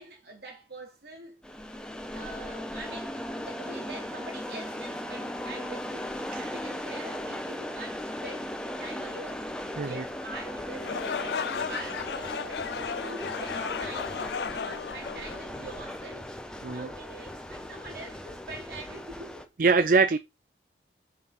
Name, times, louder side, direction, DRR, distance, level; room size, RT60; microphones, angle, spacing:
voice 1, 0.0-1.4 2.1-9.5 9.8-14.1 14.5-16.3 16.7-19.5, right 2 dB, 65° right, 3.8 m, -44 dB
sound 1, 1.4-19.4, left 1 dB, 5° left, 1.1 m, -37 dB
sound 2, 10.7-16.0, left 6 dB, 75° left, 0.4 m, -35 dB
voice 2, 19.6-20.2, right 4 dB, 50° right, 0.5 m, -23 dB
6.7 x 6.6 x 5.4 m
head